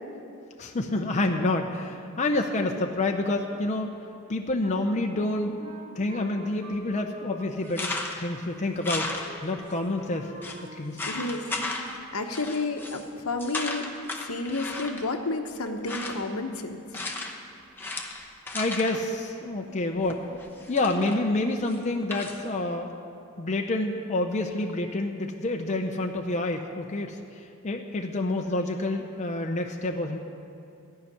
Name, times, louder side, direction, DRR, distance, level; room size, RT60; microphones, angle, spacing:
voice 1, 0.6-3.9 4.3-9.1 9.4-10.3 10.7-11.1 18.5-20.4 20.7-22.9 23.4-27.2 27.6-30.2, left 2 dB, 35° left, 2 dB, 0.6 m, -28 dB
Wind instrument woodwind instrument, 4.6-11.4 11.7-12.1, equal, 40° right, 2.1 m, -47 dB
sound 1, 7.7-8.3 8.8-9.7 10.0-10.1 10.4-10.6 11.0-12.0 12.3-13.0 13.4-15.1 15.7-16.3 16.9-17.5 17.8-19.1 20.1-21.2 21.7-22.4, left 2 dB, 10° left, 0.9 m, -35 dB
voice 2, 11.0-13.8 14.2-16.8, left 3 dB, 70° left, 5 dB, 0.9 m, -31 dB
14.5 x 5.8 x 9.7 m, 2.6 s
head